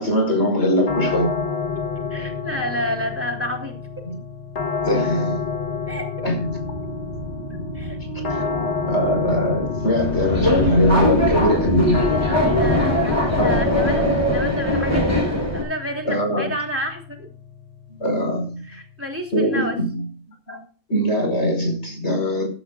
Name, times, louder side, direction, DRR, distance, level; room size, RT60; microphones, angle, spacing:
voice 1, 0.0-1.4 4.9-5.4 6.2-6.4 8.3-8.6 8.9-12.0 13.4-13.5 16.1-16.5 17.9-18.6 19.3-20.0 20.5-20.6 20.9-22.5, equal, 80° left, 5.5 m, -21 dB
sound 1, 0.9-19.8, left 5 dB, 65° left, 1.6 m, -30 dB
voice 2, 2.1-3.7 5.9-6.0 7.7-8.0 8.4-8.5 12.5-15.3 15.5-17.3 18.6-19.8, equal, 10° right, 3.2 m, -29 dB
sound 2, 6.4-14.7, right 1 dB, 90° right, 2.9 m, -32 dB
Subway metro underground, 10.0-15.6, left 1 dB, 25° left, 4.7 m, -21 dB
16.0 x 13.0 x 2.5 m
omnidirectional pair, 1.1 m